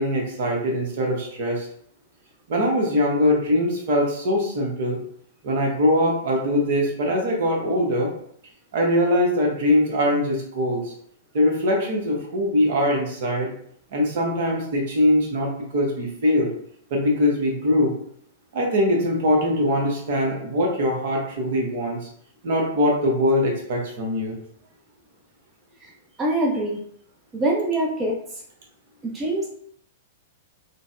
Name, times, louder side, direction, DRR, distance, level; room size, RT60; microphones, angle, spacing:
voice 1, 0.0-1.7 2.5-5.0 5.4-8.1 8.7-10.9 11.3-13.5 13.9-16.5 16.9-17.9 18.5-22.0 22.4-24.3, left 1 dB, 55° right, 0 dB, 0.9 m, -22 dB
voice 2, 26.2-26.8 27.3-28.2 29.0-29.5, right 1 dB, 20° right, -2 dB, 0.5 m, -24 dB
3.8 x 2.1 x 2.4 m, 0.65 s
figure-of-eight pair, 105°, 0 cm